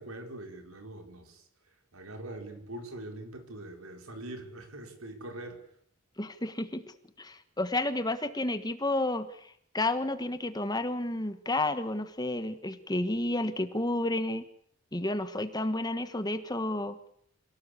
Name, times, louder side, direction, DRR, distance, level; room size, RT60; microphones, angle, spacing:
voice 1, 0.0-5.6, right 1 dB, 80° right, 5 dB, 5.1 m, -43 dB
voice 2, 6.2-6.8 7.2-14.4 14.9-17.0, left 2 dB, 20° left, 11 dB, 1.5 m, -31 dB
27.5 x 18.5 x 8.5 m, 0.66 s
head